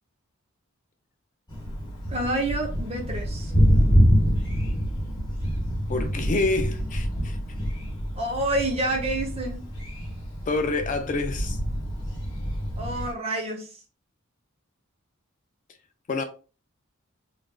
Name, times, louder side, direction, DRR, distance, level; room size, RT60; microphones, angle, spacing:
Thunder, 1.5-13.1, equal, 20° left, 1.1 m, -26 dB
voice 1, 2.1-3.5 8.2-9.6 12.8-13.7, right 1 dB, 30° right, 0.7 m, -28 dB
voice 2, 5.9-7.4 10.5-11.6 16.1-16.2, left 3 dB, 35° left, 0.3 m, -27 dB
3.2 x 2.4 x 2.2 m
head